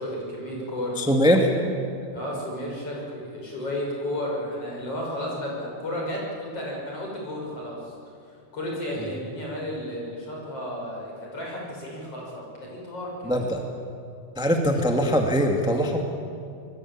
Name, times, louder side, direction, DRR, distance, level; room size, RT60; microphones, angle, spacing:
voice 1, 0.0-1.0 1.4-1.6 2.1-7.9 8.5-13.5, left 1 dB, 45° left, -2 dB, 7.2 m, -33 dB
voice 2, 1.0-1.5 13.2-13.6 14.4-16.1, equal, ahead, 2 dB, 1.4 m, -21 dB
26.0 x 21.5 x 8.8 m, 2.4 s
omnidirectional pair, 3.6 m